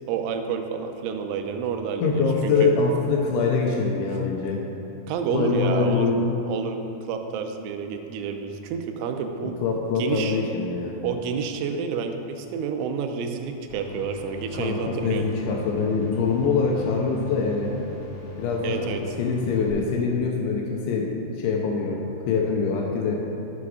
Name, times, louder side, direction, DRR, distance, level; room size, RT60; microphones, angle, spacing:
voice 1, 0.1-2.7 5.1-6.1 6.5-9.6 10.0-10.4 11.0-15.2 18.6-19.0, right 6 dB, 80° right, 5 dB, 3.0 m, -29 dB
voice 2, 2.0-4.7 5.3-6.2 9.4-11.0 14.5-17.8 18.4-18.9 19.2-23.3, left 4 dB, 80° left, 0 dB, 2.9 m, -24 dB
sound 1, 13.7-19.7, left 3 dB, 50° left, 2.1 m, -39 dB
11.0 x 7.2 x 4.8 m, 2.8 s
omnidirectional pair, 5.7 m